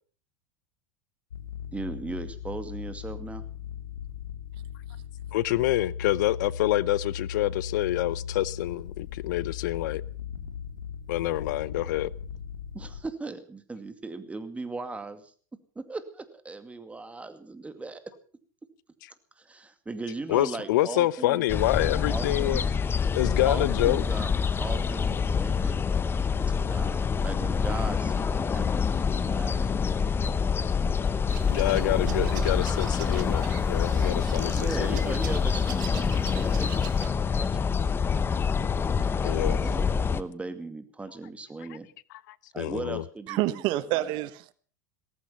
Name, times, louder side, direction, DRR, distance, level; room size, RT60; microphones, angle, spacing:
sound 1, 1.3-13.0, left 8 dB, 90° left, 2.3 m, -38 dB
voice 1, 1.7-3.4 12.7-15.3 15.8-18.0 19.4-21.5 22.0-22.7 23.5-24.3 24.6-25.8 26.5-29.6 34.6-37.7 39.0-41.9 42.5-44.3, right 3 dB, 15° right, 2.3 m, -38 dB
voice 2, 5.3-10.0 11.1-12.1 20.3-22.6 23.1-24.0 31.5-35.1 39.2-39.6 42.6-43.0, left 16 dB, 70° left, 0.7 m, -27 dB
sound 2, 21.5-40.2, left 6 dB, 20° left, 1.0 m, -26 dB
sound 3, 31.3-37.1, right 14 dB, 70° right, 2.0 m, -41 dB
voice 3, 43.3-44.5, right 16 dB, 55° right, 1.0 m, -28 dB
17.5 x 14.5 x 5.7 m
hypercardioid pair, 95°, 10 cm